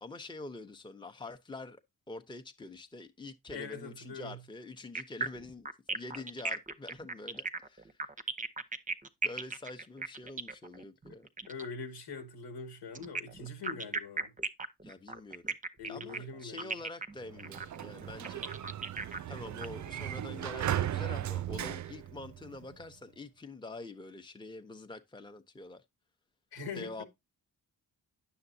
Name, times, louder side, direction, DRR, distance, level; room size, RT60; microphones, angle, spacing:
voice 1, 0.0-1.8 2.1-8.0 9.2-11.3 14.8-15.5 15.9-18.5 19.3-25.8 26.7-27.0, left 2 dB, 10° left, 0.9 m, -46 dB
voice 2, 3.5-4.4 11.1-11.2 11.5-14.3 15.8-16.8 19.8-20.0 26.5-27.1, left 4 dB, 80° left, 2.2 m, -43 dB
sound 1, 5.0-11.7 13.0-19.7, right 3 dB, 20° right, 0.8 m, -37 dB
Sliding door, 17.2-22.9, right 11 dB, 45° right, 0.4 m, -37 dB
9.5 x 7.0 x 2.7 m
cardioid pair, 55°, 41 cm